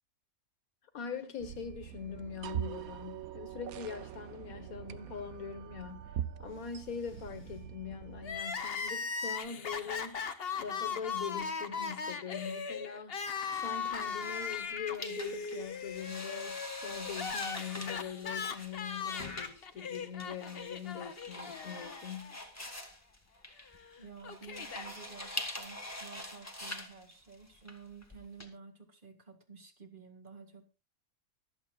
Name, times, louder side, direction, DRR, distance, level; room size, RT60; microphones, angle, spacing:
voice 1, 0.9-10.2 10.6-13.3 13.6-22.4, left 7 dB, 85° left, 1.9 m, -42 dB
sound 1, 1.4-8.4, right 10 dB, 85° right, 1.2 m, -43 dB
Crying sobbing, 8.2-22.4 22.7-22.8 23.7-24.9, left 5 dB, 45° left, 1.1 m, -38 dB
sound 2, 13.9-28.5, left 1 dB, 10° left, 1.9 m, -45 dB
voice 2, 24.0-30.7, right 5 dB, 35° right, 2.2 m, -52 dB
24.5 x 8.8 x 2.4 m
omnidirectional pair, 1.5 m